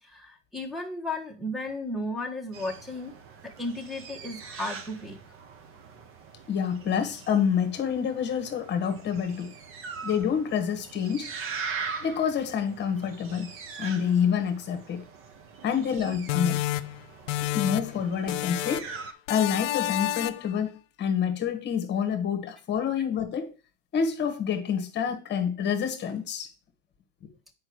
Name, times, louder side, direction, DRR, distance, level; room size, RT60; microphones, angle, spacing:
voice 1, 0.0-3.1 3.4-5.2 16.0-16.1, left 1 dB, ahead, 1.4 m, -34 dB
sound 1, 2.5-19.1, right 5 dB, 35° right, 1.2 m, -42 dB
voice 2, 6.5-9.5 10.0-11.3 12.0-13.5 13.8-15.0 15.6-16.6 17.4-18.9 19.3-23.5 23.9-26.5, left 7 dB, 30° left, 1.4 m, -27 dB
sound 2, 16.3-18.0 18.3-19.0 19.3-20.5, left 16 dB, 75° left, 0.7 m, -30 dB
7.8 x 5.3 x 4.6 m
supercardioid pair, 120°, 36 cm